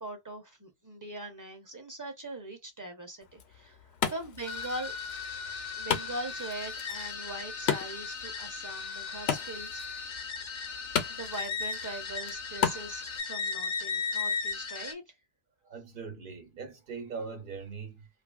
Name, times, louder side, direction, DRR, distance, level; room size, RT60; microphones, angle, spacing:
voice 1, 0.0-3.8 4.1-4.9 5.8-9.8 11.1-15.0, right 2 dB, 20° right, 0.6 m, -41 dB
Wood, 3.2-13.2, left 7 dB, 85° left, 0.9 m, -36 dB
sound 1, 4.4-14.9, left 5 dB, 40° left, 0.4 m, -36 dB
voice 2, 15.6-18.1, right 5 dB, 55° right, 0.9 m, -41 dB
2.8 x 2.5 x 2.3 m
omnidirectional pair, 1.1 m